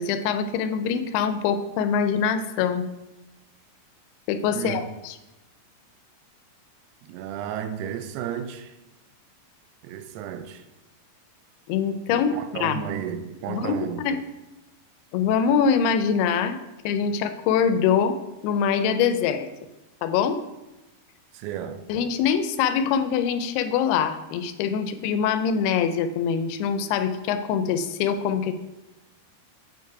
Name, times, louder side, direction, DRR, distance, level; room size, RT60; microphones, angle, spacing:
voice 1, 0.0-2.9 4.3-5.2 11.7-12.3 12.6-12.8 13.5-14.2 15.1-16.6 16.8-18.2 18.4-19.5 20.0-20.4 21.9-28.5, left 7 dB, 85° left, 2.6 m, -24 dB
voice 2, 4.5-4.9 7.0-8.8 9.8-10.7 12.1-14.1 21.3-21.9, right 9 dB, 85° right, 2.6 m, -33 dB
7.8 x 4.6 x 4.7 m
omnidirectional pair, 4.6 m